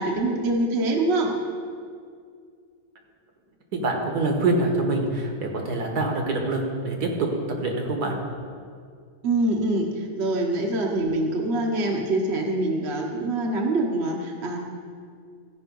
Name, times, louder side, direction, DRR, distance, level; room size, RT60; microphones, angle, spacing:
voice 1, 0.0-1.3 9.2-14.6, right 2 dB, 50° right, 0 dB, 1.1 m, -24 dB
voice 2, 3.7-7.3 7.6-8.2, right 2 dB, 70° right, 2 dB, 1.8 m, -25 dB
14.5 x 5.5 x 5.2 m, 2.2 s
omnidirectional pair, 1.7 m